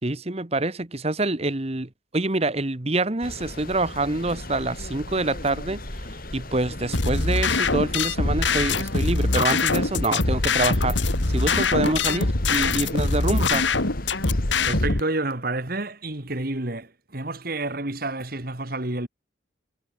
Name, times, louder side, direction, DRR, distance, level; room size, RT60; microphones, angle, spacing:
voice 1, 0.0-5.8 6.3-11.0 11.3-13.6, right 2 dB, 30° right, 1.3 m, -26 dB
sound 1, 3.2-14.9, left 1 dB, 45° left, 4.2 m, -38 dB
sound 2, 6.9-15.0, left 3 dB, 65° left, 2.2 m, -23 dB
voice 2, 14.7-19.1, right 2 dB, 50° right, 2.3 m, -29 dB
head